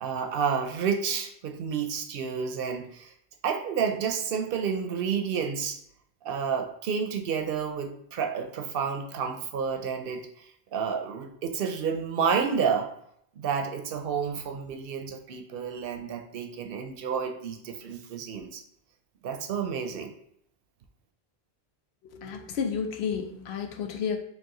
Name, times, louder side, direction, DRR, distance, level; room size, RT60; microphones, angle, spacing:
voice 1, 0.0-3.1 3.4-5.8 6.2-12.9 13.4-18.6 19.2-20.1, right 6 dB, 70° right, 5 dB, 0.7 m, -30 dB
voice 2, 22.0-24.2, left 6 dB, 85° left, 5 dB, 0.9 m, -31 dB
4.7 x 2.4 x 3.7 m, 0.71 s
omnidirectional pair, 1.0 m